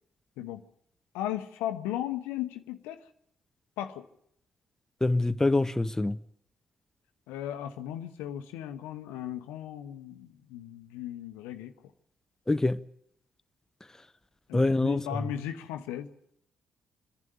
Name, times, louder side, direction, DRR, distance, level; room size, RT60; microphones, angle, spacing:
voice 1, 1.1-3.0 3.8-4.0 7.3-11.7 14.5-16.1, left 11 dB, 75° left, 1.0 m, -36 dB
voice 2, 5.0-6.2 12.5-12.8 14.5-15.0, left 2 dB, 15° left, 0.9 m, -25 dB
26.0 x 11.0 x 9.4 m
hypercardioid pair, 40°, 4 cm